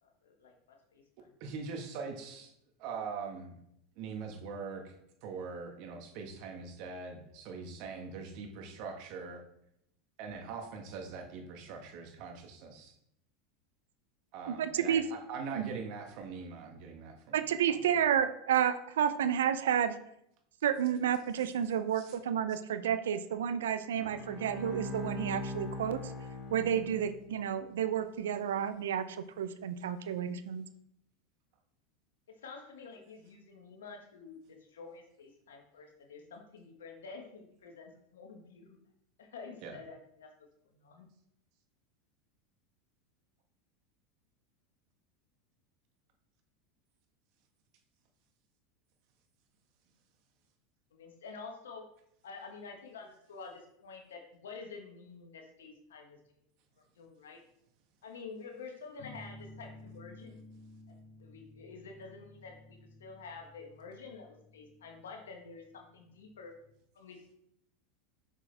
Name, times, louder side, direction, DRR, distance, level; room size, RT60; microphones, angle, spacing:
voice 1, 0.0-1.3 32.3-38.8 39.2-40.3 40.7-41.1 50.9-51.9 52.2-56.2 56.8-57.4 58.0-60.4 61.2-66.6 66.9-67.3, left 4 dB, 85° left, 3 dB, 1.4 m, -49 dB
voice 2, 1.4-2.5 2.8-3.6 4.0-4.9 5.2-9.4 10.2-12.9 14.3-17.4 17.7-17.8 21.9-22.1 39.6-39.8, right 5 dB, 60° right, 3 dB, 1.4 m, -42 dB
voice 3, 14.5-15.0 15.5-15.7 17.3-20.0 20.6-26.0 26.5-30.7, right 9 dB, 80° right, 12 dB, 0.5 m, -31 dB
Bowed string instrument, 24.0-27.5, left 1 dB, 15° left, 2.6 m, -41 dB
sound 1, 59.0-66.7, left 1 dB, 65° left, 1.2 m, -54 dB
6.1 x 5.9 x 3.4 m, 0.75 s
hypercardioid pair, 95°, 0 cm